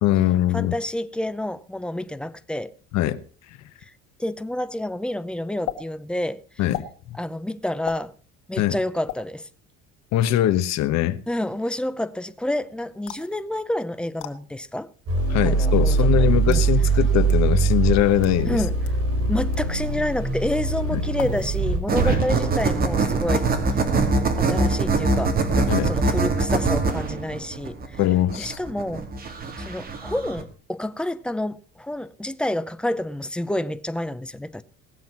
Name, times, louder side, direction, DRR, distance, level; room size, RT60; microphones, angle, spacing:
voice 1, 0.0-0.7 2.9-3.2 6.6-7.2 8.6-8.8 10.1-11.2 15.3-18.6 20.9-21.0 22.0-22.2 25.7-25.9 28.0-28.6, left 13 dB, 60° left, 1.1 m, -22 dB
voice 2, 0.5-2.7 4.2-6.4 7.2-8.1 8.5-9.5 11.3-14.9 15.4-16.6 18.5-18.8 19.3-23.5 24.4-25.3 25.8-28.0 28.4-29.1 29.6-34.6, left 1 dB, 5° left, 0.6 m, -28 dB
sound 1, 5.7-5.8 6.7-6.9 7.9-8.1 9.1-9.2 10.1-10.4 13.1-13.3 14.2-14.3 15.3-15.4 16.2-16.7 17.3-17.4 18.1-18.4 18.8-19.0 19.5-19.7 21.2-21.6 21.9-22.3, left 12 dB, 85° left, 2.1 m, -36 dB
sound 2, 15.1-21.8, right 4 dB, 50° right, 5.1 m, -22 dB
sound 3, 21.9-30.4, right 3 dB, 30° right, 2.4 m, -23 dB
19.0 x 7.7 x 5.8 m
cardioid pair, 150°, 30 cm